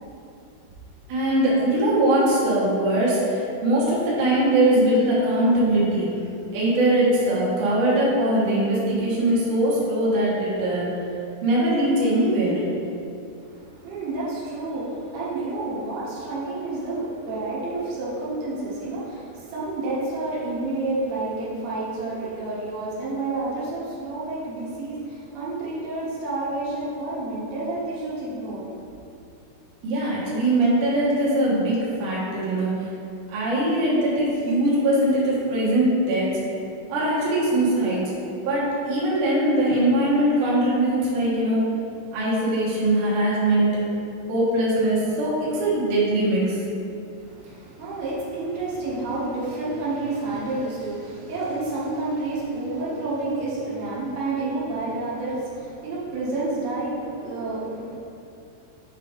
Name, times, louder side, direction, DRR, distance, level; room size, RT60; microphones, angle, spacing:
voice 1, 1.1-6.1 6.5-10.9 11.4-12.6 29.8-32.7 33.3-36.3 36.9-38.0 38.4-41.6 42.1-43.8 44.3-46.6, right 1 dB, 85° right, -8 dB, 1.7 m, -21 dB
voice 2, 13.4-28.7 47.1-58.0, right 2 dB, 70° right, -8 dB, 2.5 m, -29 dB
8.1 x 3.6 x 3.9 m, 2.7 s
omnidirectional pair, 5.8 m